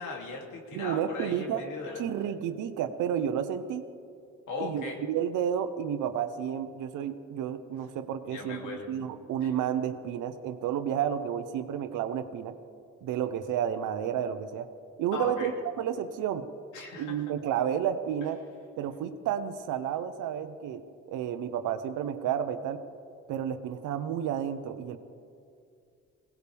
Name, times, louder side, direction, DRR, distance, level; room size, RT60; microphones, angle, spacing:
voice 1, 0.0-2.0 4.5-5.0 8.2-8.9 15.1-15.5 16.7-17.2, left 3 dB, 85° left, 0 dB, 3.0 m, -37 dB
voice 2, 0.7-1.6 2.0-3.8 4.6-12.6 13.0-14.7 15.0-15.5 15.8-16.5 17.0-18.4 18.8-22.8 23.3-25.0, right 9 dB, 90° right, 10 dB, 1.0 m, -31 dB
21.0 x 18.0 x 3.6 m, 2.3 s
cardioid pair, 90°, 30 cm